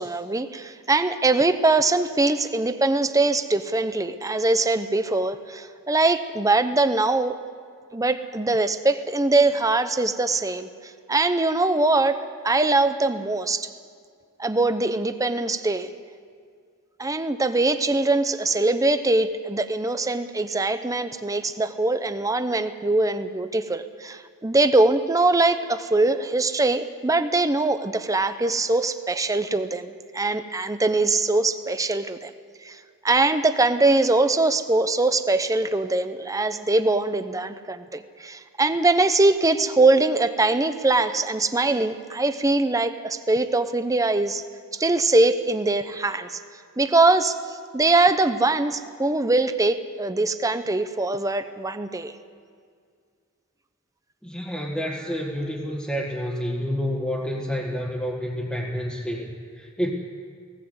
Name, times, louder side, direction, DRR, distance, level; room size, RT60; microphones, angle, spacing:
voice 1, 0.0-7.3 7.9-10.7 11.1-12.2 12.4-13.7 14.4-15.9 17.0-32.3 32.6-32.8 33.0-44.4 44.7-46.4 46.8-52.1, right 2 dB, 15° right, 10 dB, 0.8 m, -22 dB
voice 2, 54.2-59.9, equal, 5° left, -4 dB, 1.6 m, -29 dB
18.5 x 18.0 x 8.0 m, 2.1 s
head